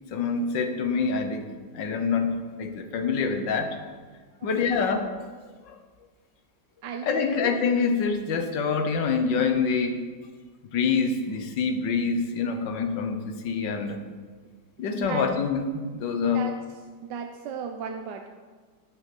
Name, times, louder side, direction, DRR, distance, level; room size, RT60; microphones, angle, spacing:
voice 1, 0.1-1.4 1.7-3.8 4.4-5.1 5.7-5.8 7.0-10.1 10.7-14.0 14.8-16.5, left 5 dB, 85° left, 6 dB, 1.7 m, -26 dB
voice 2, 4.4-4.9 6.8-7.6 14.9-15.3 16.3-16.6 17.0-18.3, right 7 dB, 85° right, 4 dB, 1.4 m, -35 dB
16.5 x 5.7 x 6.0 m, 1.5 s
omnidirectional pair, 1.9 m